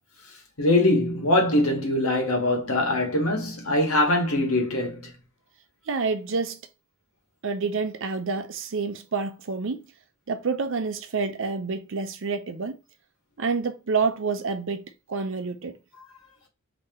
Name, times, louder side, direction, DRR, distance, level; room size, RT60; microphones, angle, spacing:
voice 1, 0.6-5.1, left 1 dB, 90° left, 1.3 m, -22 dB
voice 2, 5.9-6.6 7.4-9.9 10.3-12.8 13.4-14.8 15.1-15.8, right 4 dB, 65° right, 0.6 m, -28 dB
2.9 x 2.8 x 3.6 m
head